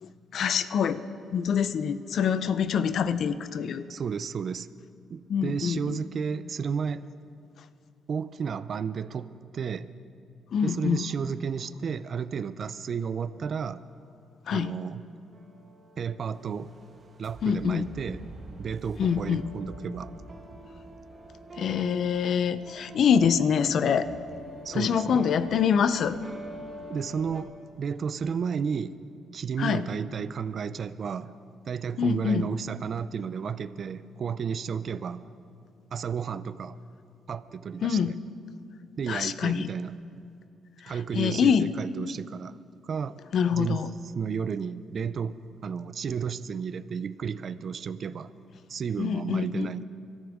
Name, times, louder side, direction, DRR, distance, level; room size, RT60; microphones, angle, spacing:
voice 1, 0.0-1.0 1.3-3.8 5.3-6.0 10.5-11.1 14.5-14.7 17.4-17.9 19.0-19.4 21.6-24.1 24.7-26.2 29.6-29.9 32.0-32.5 37.8-38.2 39.1-39.7 40.8-41.7 43.3-43.9 49.0-49.7, left 7 dB, 65° left, 13 dB, 0.6 m, -25 dB
voice 2, 3.9-4.7 5.1-7.1 8.1-9.9 10.6-13.9 14.5-15.0 16.0-16.7 17.2-18.3 18.6-20.2 24.6-25.3 26.9-29.0 29.3-31.4 31.7-35.3 35.9-36.8 37.3-38.1 39.0-40.0 40.9-43.2 43.5-43.8 44.1-45.4 45.6-48.3 48.7-49.8, right 6 dB, 50° right, 14 dB, 0.5 m, -32 dB
sound 1, 14.6-27.4, right 2 dB, 35° right, 1.6 m, -45 dB
24.5 x 14.0 x 3.6 m, 2.4 s
cardioid pair, 90°, 0 cm